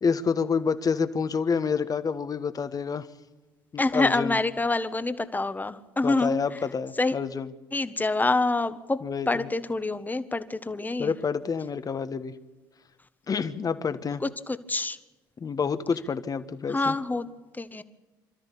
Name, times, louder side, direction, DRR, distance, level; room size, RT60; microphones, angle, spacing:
voice 1, 0.0-3.1 3.7-4.4 6.0-7.5 9.0-9.5 11.0-12.3 13.3-14.2 15.4-16.9, left 5 dB, 35° left, 11 dB, 1.4 m, -28 dB
voice 2, 3.8-6.4 7.0-7.1 7.7-9.0 9.3-11.1 14.2-15.0 16.7-17.3 17.5-17.8, left 2 dB, 15° left, 11 dB, 1.4 m, -26 dB
26.5 x 13.0 x 8.5 m, 1.2 s
hypercardioid pair, 60°, 11 cm